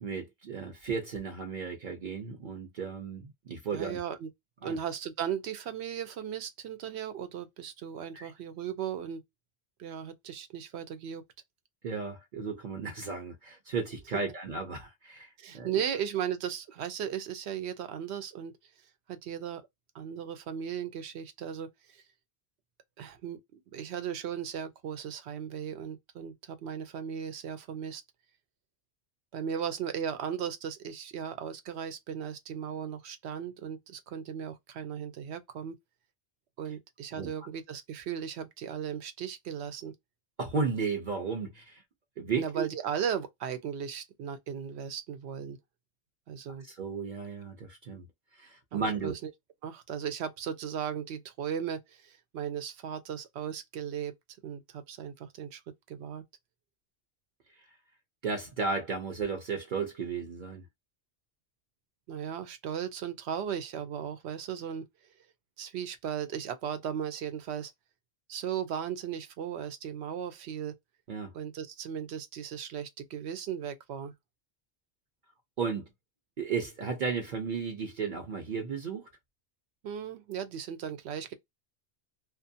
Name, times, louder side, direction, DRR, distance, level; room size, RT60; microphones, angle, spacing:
voice 1, 0.0-4.0 4.6-4.8 8.1-8.3 11.8-15.7 37.1-37.3 40.4-41.8 42.2-42.7 46.6-48.1 48.4-49.1 58.2-60.6 71.1-71.3 75.6-75.9 76.4-79.1, right 5 dB, 55° right, 0.7 m, -34 dB
voice 2, 3.7-4.3 4.6-9.2 9.8-11.2 15.4-18.5 19.1-19.6 19.9-22.0 23.0-28.0 29.3-35.7 36.6-39.9 42.3-45.6 46.3-46.7 48.7-49.3 49.6-54.1 54.4-55.6 55.9-56.2 62.1-64.8 65.6-67.7 68.3-70.8 71.3-74.1 79.8-81.3, right 8 dB, 85° right, 0.9 m, -36 dB
2.5 x 2.1 x 2.6 m
omnidirectional pair, 1.1 m